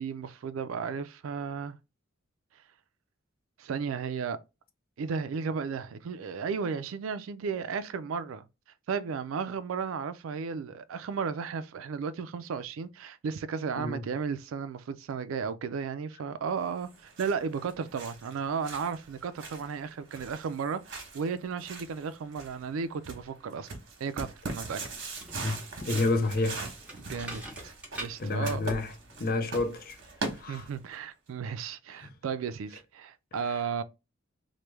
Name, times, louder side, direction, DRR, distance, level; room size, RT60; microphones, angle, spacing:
voice 1, 0.0-1.8 3.6-4.4 5.0-8.5 8.9-23.7 24.0-24.8 27.0-27.4 28.0-28.7 30.5-33.8, right 6 dB, 85° right, 0.4 m, -34 dB
sound 1, 16.8-31.0, right 3 dB, 65° right, 1.0 m, -42 dB
sound 2, 25.0-30.4, right 1 dB, 5° right, 1.0 m, -46 dB
voice 2, 25.4-26.7 28.2-28.9 29.2-30.0 30.3-30.7 32.0-32.1 33.5-33.6, left 2 dB, 50° left, 0.5 m, -30 dB
3.1 x 2.1 x 3.2 m
head